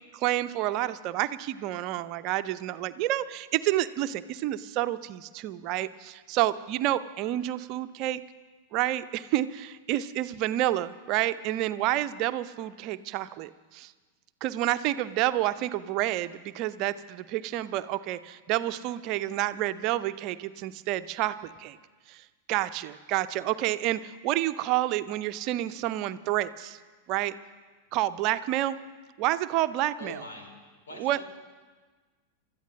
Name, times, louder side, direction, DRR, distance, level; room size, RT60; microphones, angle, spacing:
voice 1, 0.1-8.2 8.7-13.9 14.4-21.8 22.1-22.2 22.5-26.8 27.1-27.3 27.9-28.8 29.2-30.2 31.0-31.2, right 14 dB, 40° right, 13 dB, 0.6 m, -29 dB
voice 2, 30.0-30.6 30.9-31.2, left 2 dB, 70° left, 4 dB, 3.8 m, -43 dB
16.5 x 13.0 x 6.2 m, 1.4 s
figure-of-eight pair, 90°, 0 cm